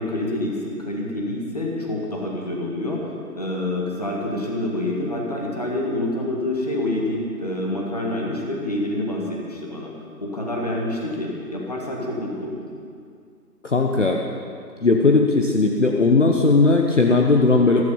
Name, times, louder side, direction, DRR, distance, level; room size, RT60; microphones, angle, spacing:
voice 1, 0.0-3.1 3.4-9.9 10.2-12.6, left 1 dB, 25° left, -1 dB, 1.6 m, -27 dB
voice 2, 13.6-14.2 14.8-17.8, left 3 dB, 45° left, 2 dB, 0.9 m, -17 dB
14.5 x 14.5 x 5.5 m, 2.3 s
figure-of-eight pair, 175°, 49 cm